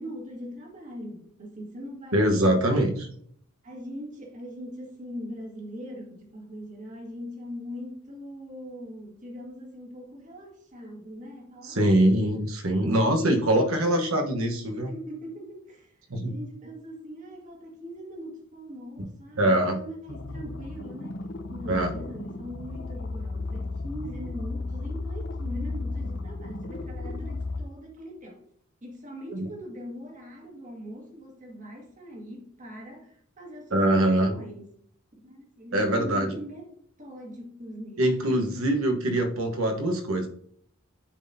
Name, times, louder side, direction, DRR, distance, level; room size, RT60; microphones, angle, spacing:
voice 1, 0.0-2.2 2.4-2.9 3.6-12.2 12.8-14.1 14.9-21.2 21.5-28.4 28.8-34.7 35.2-38.4, equal, 35° right, 1.6 m, -41 dB
voice 2, 2.1-2.9 11.6-14.9 16.1-16.4 19.4-19.8 21.7-21.9 29.3-29.5 33.7-34.3 35.7-36.4 38.0-40.3, right 1 dB, 75° right, 1.2 m, -23 dB
sound 1, 20.1-27.6, left 3 dB, 60° left, 0.7 m, -34 dB
9.9 x 4.0 x 2.7 m
head